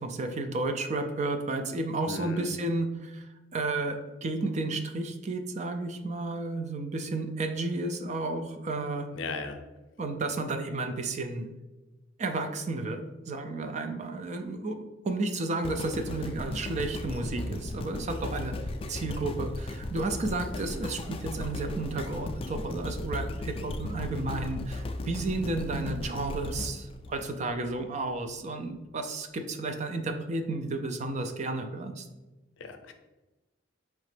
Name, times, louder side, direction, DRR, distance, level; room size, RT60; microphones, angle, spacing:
voice 1, 0.0-9.1 10.0-11.5 12.2-14.8 15.0-32.1, right 2 dB, 40° right, 7 dB, 0.4 m, -32 dB
voice 2, 2.1-2.5 9.1-9.6 32.6-32.9, left 3 dB, 80° left, 6 dB, 0.5 m, -36 dB
sound 1, 15.6-27.8 28.4-28.5, left 2 dB, 30° left, 0.3 m, -36 dB
4.9 x 3.2 x 3.2 m, 1.1 s
head